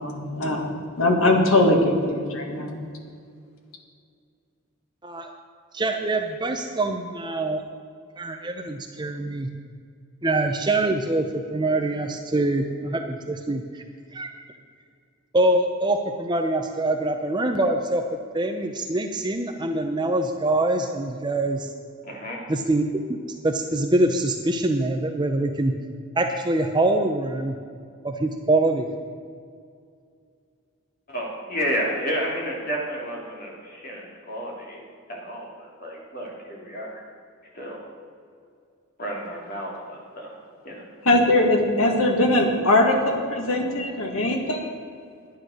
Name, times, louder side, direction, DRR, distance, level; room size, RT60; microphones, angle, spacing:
voice 1, 0.0-2.8 41.1-44.7, left 1 dB, 75° left, 2 dB, 1.8 m, -21 dB
voice 2, 5.7-7.6 8.2-9.5 10.2-13.8 14.1-14.3 15.3-18.0 18.3-21.7 22.5-22.8 23.1-23.2 23.4-25.7 26.2-27.6 28.0-28.9, right 2 dB, 20° right, 5 dB, 0.6 m, -24 dB
voice 3, 22.0-22.4 31.1-37.0 37.5-37.8 39.0-40.3 40.6-40.8, equal, 45° left, -2 dB, 2.8 m, -31 dB
11.5 x 9.8 x 6.4 m, 2.3 s
head